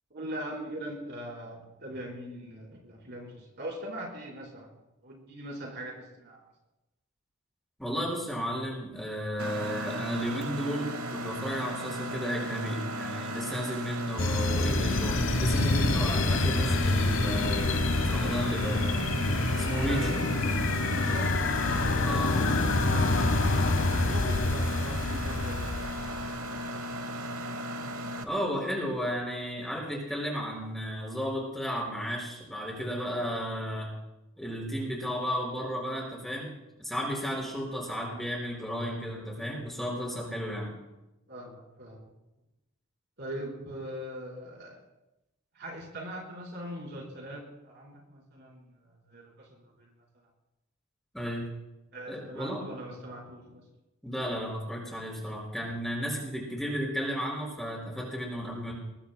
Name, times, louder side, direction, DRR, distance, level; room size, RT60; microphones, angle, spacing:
voice 1, 0.1-4.7 5.0-6.4 19.7-20.1 20.8-21.4 22.8-26.4 26.6-27.0 41.3-42.1 43.2-44.8 45.5-49.5 49.8-49.9 51.9-53.6, right 1 dB, 50° right, -3 dB, 4.3 m, -41 dB
voice 2, 7.8-17.7 18.1-18.8 19.6-20.2 22.0-22.4 28.2-33.9 34.4-36.5 36.8-40.7 51.1-51.5 52.1-52.6 54.0-58.7, equal, ahead, -3 dB, 5.3 m, -33 dB
Mechanisms, 9.4-28.2, equal, 80° right, 1.2 m, -36 dB
sound 1, 14.2-26.5, left 2 dB, 60° left, 0.9 m, -27 dB
23.5 x 21.0 x 2.2 m, 0.97 s
head